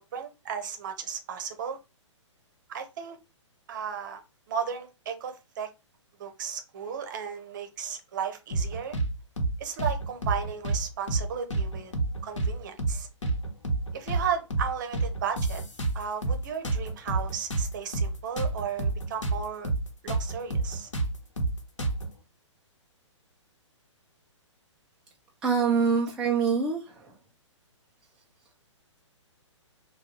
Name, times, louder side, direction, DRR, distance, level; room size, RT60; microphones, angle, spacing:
voice 1, 0.1-1.8 2.7-3.2 3.7-4.2 4.5-5.7 6.2-9.0 9.6-11.9 12.2-13.1 13.9-15.6 15.9-19.7 20.0-20.9, right 7 dB, 40° right, 0.7 m, -34 dB
sound 1, 8.5-9.1 9.4-9.5 9.8-10.8 11.1-11.2 11.5-12.5 12.8-13.0 13.2-14.2 14.5-14.7 14.9-16.4 16.6-19.4 19.6-19.8 20.1-22.1, right 3 dB, 70° left, 1.1 m, -28 dB
voice 2, 25.4-27.1, right 5 dB, 5° right, 0.3 m, -25 dB
3.4 x 2.3 x 4.4 m
figure-of-eight pair, 120°, 16 cm